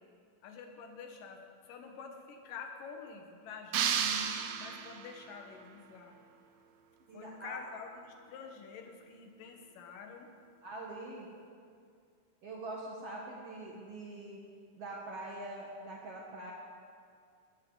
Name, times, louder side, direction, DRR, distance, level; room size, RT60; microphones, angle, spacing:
voice 1, 0.4-3.9 4.6-6.2 7.1-10.3, left 5 dB, 80° left, 4 dB, 3.0 m, -48 dB
sound 1, 3.7-5.3, right 7 dB, 80° right, 1.4 m, -32 dB
voice 2, 7.1-7.6 10.6-11.3 12.4-14.4 14.7-16.5, right 2 dB, 55° right, -3 dB, 2.1 m, -43 dB
18.5 x 15.0 x 4.0 m, 2.3 s
omnidirectional pair, 3.8 m